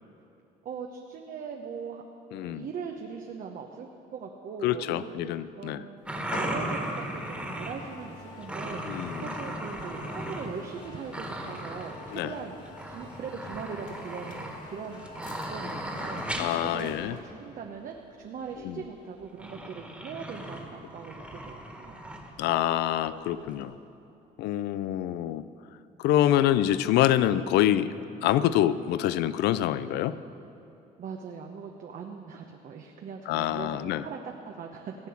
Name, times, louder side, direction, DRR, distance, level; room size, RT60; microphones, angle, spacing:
voice 1, 0.6-2.0 2.5-12.6 12.9-21.9 31.0-35.1, right 6 dB, 55° right, 2 dB, 1.0 m, -40 dB
voice 2, 2.3-2.7 4.6-5.8 8.9-9.3 12.1-12.3 16.4-17.2 18.6-18.8 22.4-23.7 24.4-25.4 26.0-27.9 28.2-30.2 33.3-34.0, left 12 dB, 85° left, 15 dB, 0.5 m, -26 dB
sound 1, 6.0-7.9 8.4-10.5 10.7-12.3 12.6-16.6 18.5-18.6 19.4-22.3 23.1-23.2 23.5-23.6, right 1 dB, 5° right, 1.8 m, -37 dB
sound 2, 6.1-17.3, left 2 dB, 50° left, 2.4 m, -45 dB
16.0 x 8.4 x 7.1 m, 2.9 s
cardioid pair, 110°, 17 cm